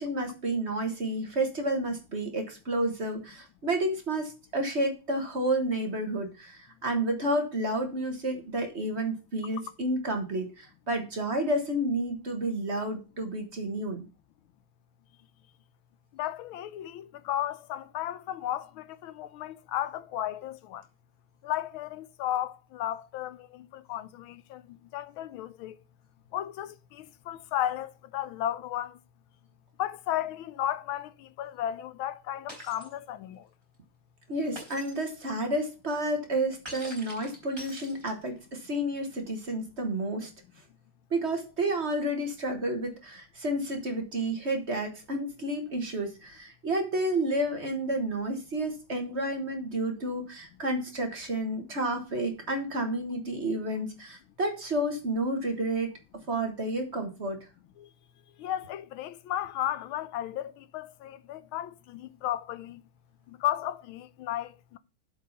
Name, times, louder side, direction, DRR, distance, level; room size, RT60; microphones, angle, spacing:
voice 1, 0.0-14.1 34.3-40.3 41.1-55.9 56.3-57.4, right 1 dB, 35° right, 1.5 m, -30 dB
voice 2, 16.1-20.8 21.4-25.8 26.3-29.0 29.8-33.5 57.8-57.9 58.4-62.8 63.3-64.8, left 12 dB, 85° left, 1.5 m, -34 dB
Shatter, 32.5-32.9 34.6-35.0 36.7-38.4, right 1 dB, 10° right, 3.8 m, -44 dB
7.7 x 4.8 x 6.6 m
omnidirectional pair, 2.2 m